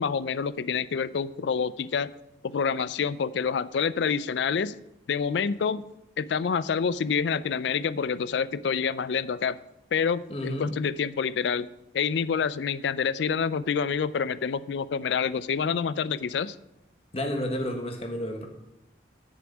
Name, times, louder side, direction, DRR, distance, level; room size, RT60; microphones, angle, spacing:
voice 1, 0.0-2.1 2.4-4.8 5.1-5.8 6.2-9.6 9.9-11.7 11.9-16.6, left 6 dB, 75° left, 17 dB, 0.4 m, -27 dB
voice 2, 10.3-10.8 17.1-18.5, left 1 dB, 30° left, 4 dB, 1.2 m, -31 dB
6.9 x 6.2 x 7.1 m, 0.87 s
head